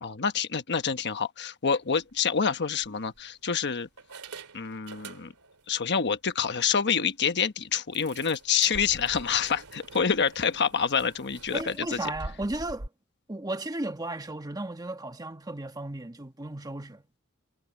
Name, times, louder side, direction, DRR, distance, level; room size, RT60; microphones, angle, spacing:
voice 1, 0.0-3.9 4.5-5.3 5.7-12.1, left 6 dB, 50° left, 1.1 m, -27 dB
sound 1, 1.9-2.1 2.8-3.5 4.0-5.6 5.9-6.1 6.5-6.6 6.9-7.0 7.9-12.9, right 3 dB, 80° right, 2.6 m, -45 dB
voice 2, 11.5-12.9 13.3-17.0, right 2 dB, 15° right, 1.3 m, -35 dB
head